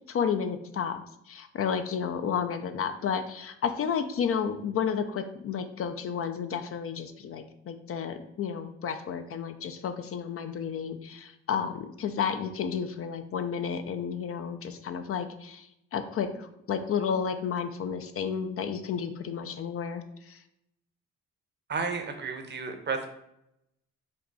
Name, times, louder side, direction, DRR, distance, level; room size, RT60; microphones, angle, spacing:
voice 1, 0.1-1.0 1.3-20.4, left 7 dB, 50° left, 9 dB, 0.5 m, -32 dB
voice 2, 21.7-23.1, right 4 dB, 35° right, 6 dB, 0.7 m, -32 dB
5.3 x 2.3 x 4.0 m, 0.80 s
cardioid pair, 90°, 30 cm